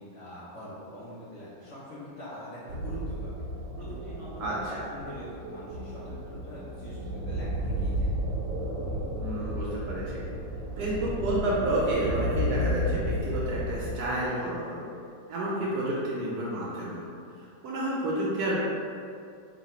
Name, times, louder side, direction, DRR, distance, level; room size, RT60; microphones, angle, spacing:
voice 1, 0.0-3.3 3.8-8.1 15.6-15.8, equal, 55° left, -10 dB, 0.9 m, -43 dB
sound 1, 2.7-13.9, equal, 90° right, 1.3 m, -32 dB
voice 2, 4.4-4.8 9.2-10.2 10.8-14.9 15.3-17.0 17.3-18.6, right 1 dB, 70° right, -6 dB, 1.0 m, -30 dB
3.2 x 2.7 x 4.1 m, 2.4 s
omnidirectional pair, 2.0 m